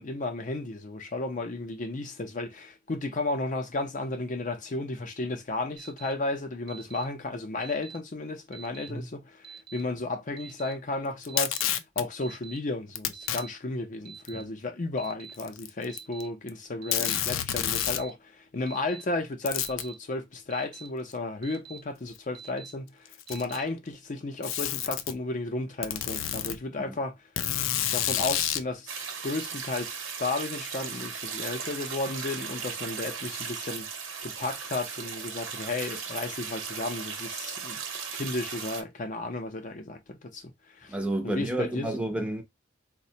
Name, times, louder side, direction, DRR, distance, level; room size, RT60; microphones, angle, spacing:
voice 1, 0.0-11.6 12.0-27.2 27.9-29.0 29.2-29.9 30.2-33.9 34.2-37.8 38.1-40.5 40.8-40.9 41.2-42.0, left 2 dB, 40° left, 0.6 m, -33 dB
Alarm, 5.8-6.1 6.7-7.0 7.6-8.0 8.5-8.9 9.4-9.8 10.4-10.7 11.3-11.6 12.2-12.6 13.1-13.5 14.0-14.4 15.0-15.3 15.9-16.2 16.8-17.2 17.7-18.1 18.7-19.0 19.6-19.9 20.5-20.9 21.4-21.8 22.3-22.7 23.3-23.6, right 7 dB, 50° right, 0.7 m, -45 dB
Packing tape duct tape, 11.2-12.0 13.0-13.4 14.3-14.4 15.3-16.2 16.5-16.6 16.9-18.1 19.5-19.9 21.1-21.2 22.2-22.3 23.1-23.7 24.4-25.1 25.8-26.6 27.4-28.7, left 10 dB, 90° left, 0.4 m, -29 dB
sound 1, 28.9-38.8, right 6 dB, 80° right, 0.9 m, -37 dB
voice 2, 40.9-42.4, right 1 dB, 5° right, 0.6 m, -30 dB
4.1 x 2.1 x 2.7 m
head